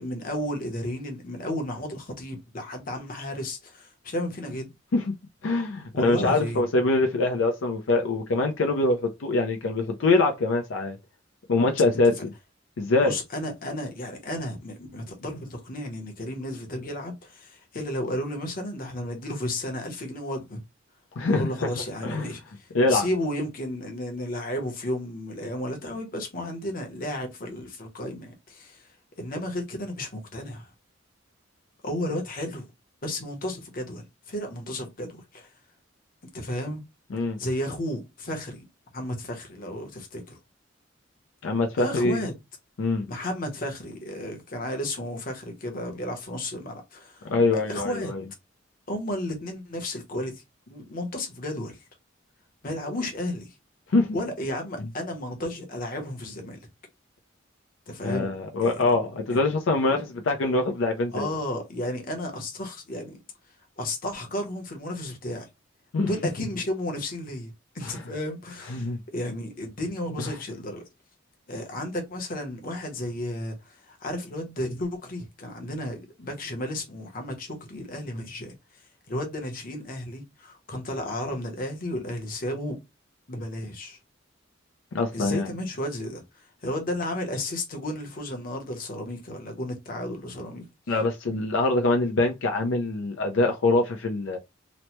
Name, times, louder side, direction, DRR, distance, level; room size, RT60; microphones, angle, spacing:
voice 1, 0.0-4.7 5.9-6.6 13.0-20.6 21.3-28.9 29.2-30.7 31.8-32.7 33.0-35.5 36.3-36.8 37.4-38.6 38.9-40.4 41.8-42.3 43.1-47.3 47.7-48.1 48.9-51.8 52.6-53.5 54.1-56.6 57.9-58.3 58.6-58.8 59.3-59.4 59.9-60.0 61.1-63.2 63.8-65.5 66.0-70.8 71.5-78.5 79.1-82.8 83.3-84.0 85.1-90.7, left 1 dB, 45° left, 0.9 m, -33 dB
voice 2, 5.4-11.0 11.5-12.3 12.8-13.1 21.2-21.7 22.0-22.2 22.7-23.1 37.1-37.4 41.4-42.3 42.8-43.1 47.3-48.2 53.9-54.2 58.0-61.3 65.9-66.1 67.9-68.0 68.7-69.0 70.2-70.3 84.9-85.5 90.9-94.4, left 2 dB, 80° left, 0.5 m, -24 dB
3.0 x 2.1 x 2.9 m
head